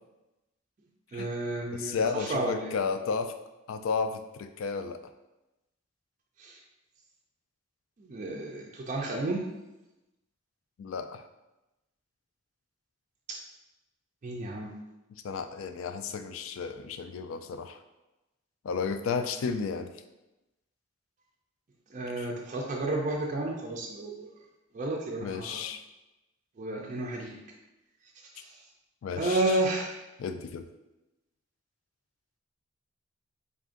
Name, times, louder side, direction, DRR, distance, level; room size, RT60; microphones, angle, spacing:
voice 1, 1.1-2.7 6.4-6.6 8.0-9.5 13.3-13.4 14.2-14.7 21.9-24.3 24.7-25.6 26.6-27.4 28.3-28.5 29.1-30.0, right 2 dB, 35° right, -1 dB, 0.4 m, -31 dB
voice 2, 1.7-3.3 3.7-5.0 10.8-11.2 15.2-17.8 18.6-19.9 22.2-22.3 25.2-25.8 29.0-29.6 30.2-30.6, left 5 dB, 75° left, 9 dB, 0.3 m, -33 dB
3.5 x 2.5 x 3.7 m, 0.99 s
head